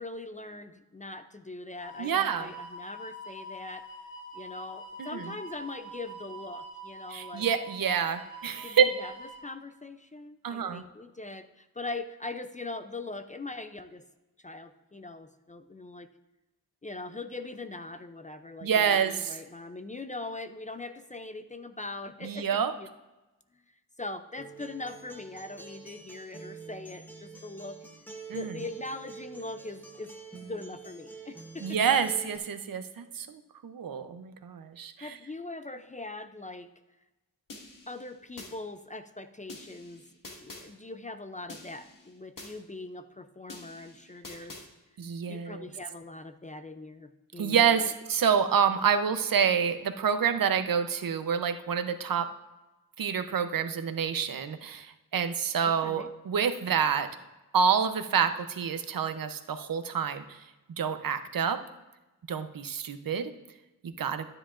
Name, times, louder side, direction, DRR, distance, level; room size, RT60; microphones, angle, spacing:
voice 1, 0.0-3.9 4.3-7.5 8.6-9.1 9.4-14.0 14.4-16.1 16.8-22.9 24.0-27.8 28.3-30.1 30.4-31.8 35.0-36.7 37.9-40.0 40.4-44.6 45.3-47.9 55.6-56.1, left 2 dB, 20° left, 9 dB, 0.4 m, -41 dB
sound 1, 1.8-9.4, right 2 dB, 75° left, 3.5 m, -45 dB
voice 2, 2.0-2.5 5.0-5.2 7.1-8.9 10.4-10.8 18.6-19.3 22.2-22.7 28.3-28.5 31.6-35.2 45.0-45.7 47.4-52.3 53.0-54.9 55.1-57.1 57.5-60.2 60.8-61.6 62.3-63.3 63.8-64.3, right 7 dB, 65° right, 9 dB, 0.7 m, -27 dB
Acoustic guitar, 24.4-32.4, right 4 dB, 5° left, 0.9 m, -47 dB
sound 2, 37.5-38.5 39.5-40.6 41.5-42.5 43.5-44.6, left 2 dB, 55° left, 1.6 m, -47 dB
12.5 x 9.9 x 2.5 m, 1.0 s
wide cardioid pair, 130°, 38 cm